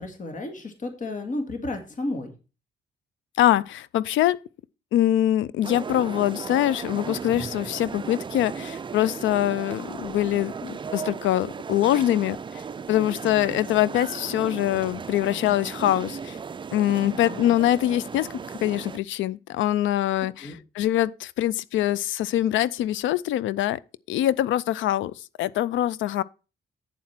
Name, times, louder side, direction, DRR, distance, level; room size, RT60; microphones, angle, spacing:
voice 1, 0.0-2.3 17.3-17.4 20.4-20.6, left 2 dB, 40° left, 2.1 m, -32 dB
voice 2, 3.4-4.4 4.9-12.6 12.9-16.4 16.7-18.3 18.6-23.8 24.1-26.2, left 13 dB, 75° left, 0.4 m, -24 dB
sound 1, 5.6-19.0, right 6 dB, 25° right, 0.4 m, -36 dB
8.4 x 7.4 x 4.3 m
cardioid pair, 90°, 20 cm